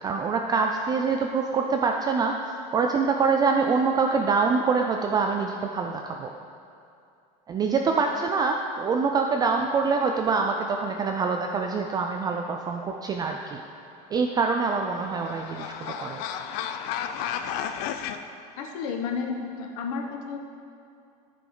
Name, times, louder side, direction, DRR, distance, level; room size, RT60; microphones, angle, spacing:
voice 1, 0.0-6.3 7.5-13.6 14.1-16.2, right 4 dB, 20° right, 3 dB, 0.3 m, -25 dB
sound 1, 14.3-18.2, left 9 dB, 60° left, 0.5 m, -33 dB
voice 2, 18.6-20.4, left 5 dB, 85° left, 2 dB, 1.1 m, -32 dB
14.0 x 5.1 x 3.8 m, 2.5 s
cardioid pair, 145°, 18 cm